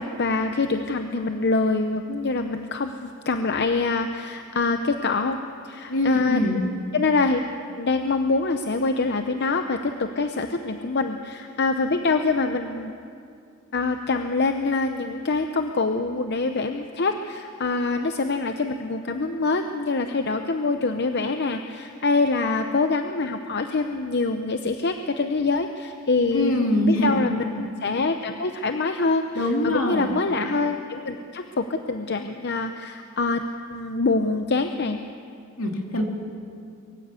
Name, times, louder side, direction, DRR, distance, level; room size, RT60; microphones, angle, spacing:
voice 1, 0.0-5.4 5.6-7.4 7.7-12.9 13.7-33.4 33.7-35.0, left 3 dB, 55° left, 7 dB, 0.7 m, -25 dB
voice 2, 5.9-6.6 26.3-27.2 29.3-30.1 35.6-36.0, left 1 dB, 75° left, 2 dB, 2.7 m, -23 dB
22.5 x 15.0 x 8.2 m, 2.4 s
head